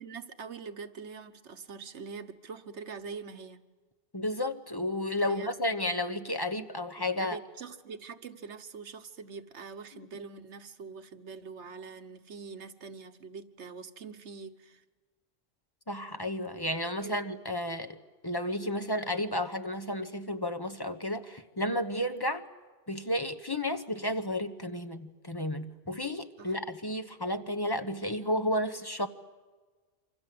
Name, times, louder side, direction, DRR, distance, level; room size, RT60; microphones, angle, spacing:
voice 1, 0.0-3.6 5.3-5.6 7.2-14.8 17.0-17.3 26.4-26.5, right 5 dB, 70° right, 1.5 m, -44 dB
voice 2, 4.1-7.4 15.9-18.0 18.2-22.4 22.9-29.1, left 1 dB, 20° left, 1.1 m, -32 dB
27.5 x 25.5 x 7.7 m
omnidirectional pair, 1.2 m